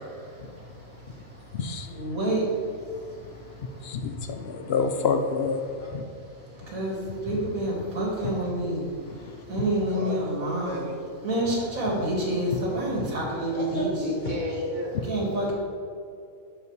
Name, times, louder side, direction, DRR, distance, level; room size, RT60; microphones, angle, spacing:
voice 1, 0.1-4.6 6.3-10.8 11.2-13.9 15.0-15.5, right 1 dB, 75° right, -3 dB, 2.3 m, -29 dB
voice 2, 1.5-1.9 3.8-5.6 5.9-6.0 7.1-7.2 12.5-12.6, left 5 dB, 60° left, 7 dB, 0.7 m, -27 dB
voice 3, 9.7-11.0 13.5-14.9 15.2-15.4, left 1 dB, 35° left, -4 dB, 1.1 m, -33 dB
12.0 x 5.0 x 3.2 m, 2.5 s
omnidirectional pair, 1.4 m